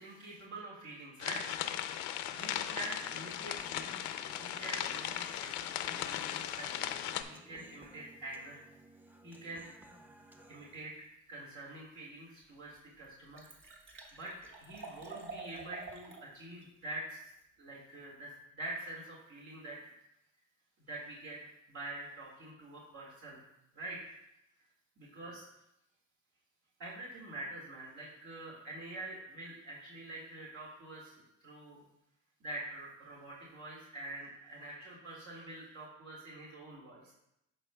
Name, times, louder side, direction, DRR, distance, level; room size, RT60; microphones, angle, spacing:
voice 1, 0.0-8.6 9.2-9.6 10.5-10.9 11.3-13.5 13.9-14.3 14.6-17.3 17.6-19.9 20.8-21.4 21.7-23.4 23.7-24.2 25.0-25.5 26.8-31.8 32.4-37.1, right 2 dB, 75° right, -5 dB, 2.0 m, -46 dB
sound 1, 1.2-7.2, left 11 dB, 90° left, 0.5 m, -37 dB
Human voice, 2.8-10.8, right 1 dB, 5° right, 0.5 m, -57 dB
Liquid, 12.2-12.3 12.7-12.8 13.0-16.3 16.6-16.7, right 4 dB, 40° right, 1.5 m, -48 dB
12.5 x 4.4 x 2.2 m, 0.84 s
cardioid pair, 95°, 29 cm